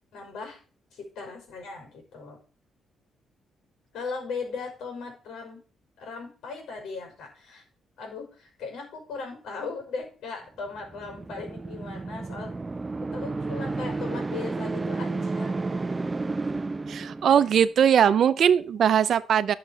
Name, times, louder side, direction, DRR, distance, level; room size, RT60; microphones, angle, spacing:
voice 1, 0.1-0.6 0.9-2.4 3.9-5.6 6.0-7.6 8.0-12.5 13.1-15.6, left 4 dB, 75° left, 5.5 m, -38 dB
sound 1, 10.8-17.7, right 3 dB, 20° right, 0.5 m, -32 dB
voice 2, 16.9-19.5, right 8 dB, 55° right, 0.7 m, -20 dB
11.5 x 6.8 x 6.4 m
cardioid pair, 135°, 0 cm